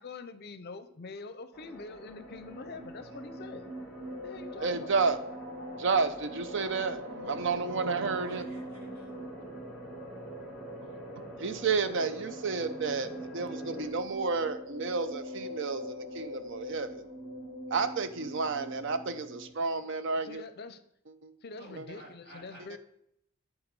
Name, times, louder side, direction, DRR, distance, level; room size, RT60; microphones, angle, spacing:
voice 1, 0.0-3.7 4.2-4.9 20.2-20.8 21.4-22.8, left 3 dB, 50° left, 11 dB, 0.5 m, -44 dB
sound 1, 1.5-13.9, right 1 dB, ahead, 1.8 m, -46 dB
sound 2, 2.2-19.5, equal, 90° right, 2.2 m, -44 dB
voice 2, 4.6-5.2 5.7-8.4 11.4-17.0 17.7-20.4 21.2-21.3 21.8-21.9, right 4 dB, 65° right, 10 dB, 0.6 m, -31 dB
voice 3, 8.3-9.1 21.5-22.8, right 1 dB, 50° right, -5 dB, 2.3 m, -52 dB
8.7 x 3.8 x 5.3 m, 0.75 s
head